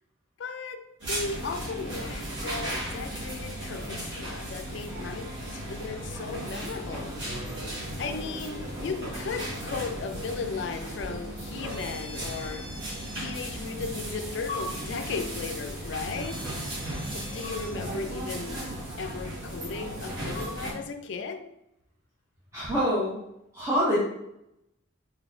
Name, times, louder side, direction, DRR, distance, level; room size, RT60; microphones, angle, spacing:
voice 1, 0.4-7.1 8.0-12.7 13.2-16.8 17.1-18.7 19.0-21.5, left 4 dB, 65° left, 0.4 m, -36 dB
sound 1, 1.0-20.7, right 1 dB, 60° right, 1.5 m, -36 dB
voice 2, 22.5-23.2 23.5-24.0, equal, 15° right, 0.7 m, -25 dB
4.0 x 3.5 x 2.5 m
head